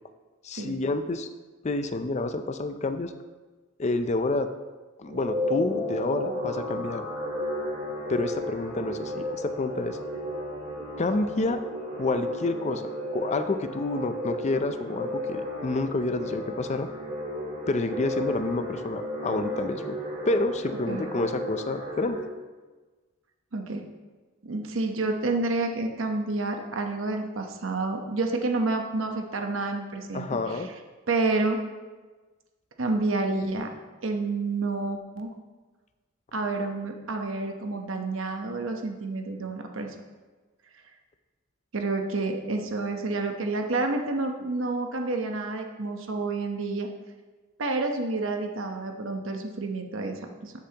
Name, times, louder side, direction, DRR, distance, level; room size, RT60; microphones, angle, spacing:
voice 1, 0.4-1.3 1.6-3.1 3.8-4.5 5.0-7.0 8.1-10.0 11.0-11.6 11.9-16.9 17.7-20.0 20.3-22.2 30.1-30.7, left 2 dB, 35° left, 9 dB, 0.5 m, -29 dB
sound 1, 5.0-22.2, left 1 dB, 40° right, 2.9 m, -33 dB
voice 2, 24.4-30.6 31.1-31.6 32.8-33.7 34.0-35.3 36.3-39.9 41.7-46.9 47.6-50.5, right 3 dB, 85° right, 4 dB, 1.0 m, -29 dB
13.0 x 6.8 x 2.9 m, 1.3 s
head